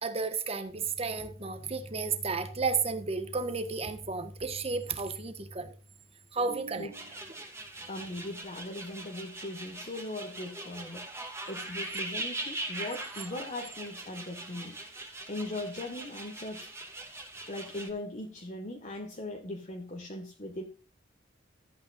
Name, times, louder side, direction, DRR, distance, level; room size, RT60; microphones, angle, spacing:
voice 1, 0.0-5.7 6.3-6.9, right 4 dB, 35° right, 8 dB, 1.5 m, -32 dB
sound 1, 6.9-17.9, right 2 dB, 15° right, 2.2 m, -41 dB
voice 2, 7.9-14.8 15.3-16.7 17.0-17.1 17.5-20.6, left 1 dB, 40° left, 1 dB, 1.7 m, -39 dB
14.0 x 8.8 x 2.6 m, 0.35 s
head